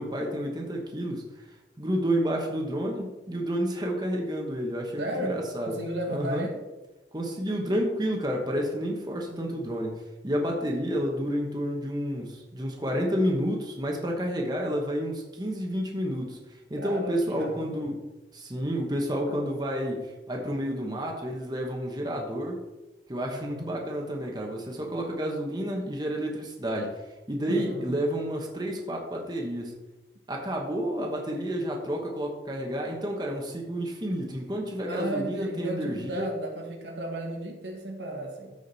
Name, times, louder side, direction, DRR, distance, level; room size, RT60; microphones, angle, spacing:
voice 1, 0.0-5.8 6.1-6.5 7.1-18.0 18.3-22.6 23.1-29.7 30.3-36.3, equal, 25° right, 0 dB, 1.1 m, -30 dB
voice 2, 5.0-5.4 5.7-6.6 16.8-17.9 23.3-23.7 27.5-27.9 34.8-38.5, right 1 dB, 80° right, 1 dB, 1.9 m, -34 dB
13.5 x 5.0 x 4.1 m, 1.1 s
head